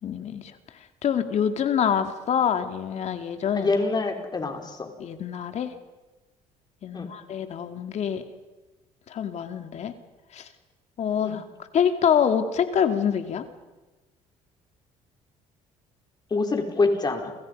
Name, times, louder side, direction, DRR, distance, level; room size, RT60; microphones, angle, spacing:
voice 1, 0.0-0.5 1.0-3.8 5.0-5.7 6.8-8.2 9.1-9.9 10.3-10.5 11.0-11.4 11.7-13.4, left 8 dB, 55° left, 7 dB, 2.3 m, -25 dB
voice 2, 3.5-4.9 6.9-7.1 11.2-11.3 16.3-17.3, left 3 dB, 30° left, 3 dB, 4.7 m, -25 dB
29.5 x 28.0 x 5.5 m, 1.2 s
supercardioid pair, 90°, 14 cm